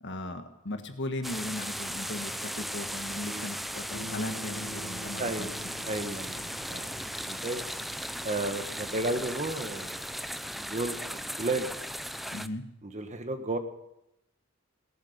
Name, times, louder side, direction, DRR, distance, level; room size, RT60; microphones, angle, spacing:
voice 1, 0.0-5.5 12.3-12.6, left 1 dB, 60° left, 6 dB, 1.7 m, -37 dB
sound 1, 1.2-12.5, equal, ahead, 0.5 m, -37 dB
Bass guitar, 3.9-10.2, left 1 dB, 75° left, 1.7 m, -47 dB
voice 2, 5.2-5.6 5.8-6.4 6.7-7.6 8.2-10.0 10.6-11.7 12.8-13.6, right 2 dB, 35° right, 8 dB, 1.3 m, -33 dB
18.0 x 11.0 x 6.7 m, 0.85 s
head